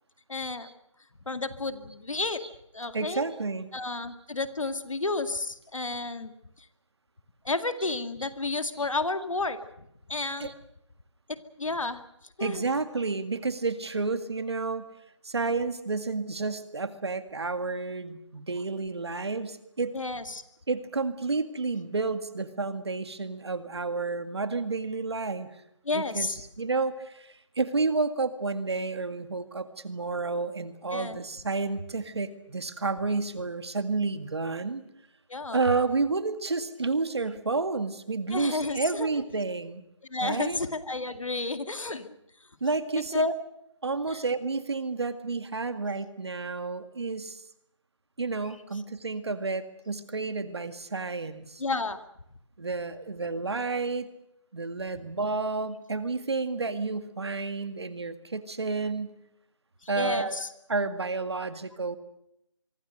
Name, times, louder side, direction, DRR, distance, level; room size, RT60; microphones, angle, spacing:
voice 1, 0.3-0.7 1.3-2.4 2.7-3.3 3.7-6.3 7.4-9.6 10.1-10.5 11.3-12.0 12.4-12.6 19.9-20.4 25.9-26.4 30.9-31.2 35.3-35.6 38.3-39.1 40.1-42.1 43.1-43.3 44.1-44.2 51.6-52.0 59.8-60.5, left 3 dB, 90° left, 9 dB, 2.1 m, -31 dB
voice 2, 2.9-3.7 8.8-8.9 10.4-10.5 12.4-14.9 15.2-20.0 20.7-25.5 25.9-34.8 35.5-39.8 40.2-40.6 42.6-43.3 43.8-47.4 48.2-51.6 52.6-54.1 54.5-59.1 59.9-60.4 60.7-62.0, right 3 dB, 55° right, 10 dB, 2.0 m, -30 dB
24.5 x 24.0 x 6.6 m, 0.80 s
figure-of-eight pair, 175°, 16 cm